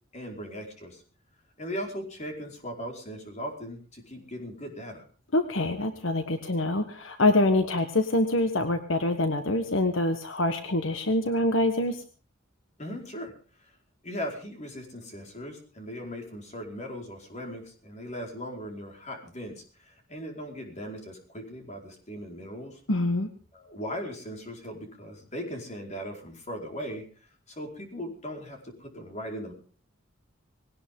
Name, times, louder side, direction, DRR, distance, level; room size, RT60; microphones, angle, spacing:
voice 1, 0.1-1.0 1.6-5.0 12.8-13.7 14.0-22.8 23.5-27.0 27.5-29.5, equal, 35° left, 2 dB, 4.7 m, -38 dB
voice 2, 5.3-12.0 22.9-23.3, left 2 dB, 70° left, 8 dB, 1.4 m, -25 dB
20.0 x 18.0 x 3.8 m, 0.38 s
head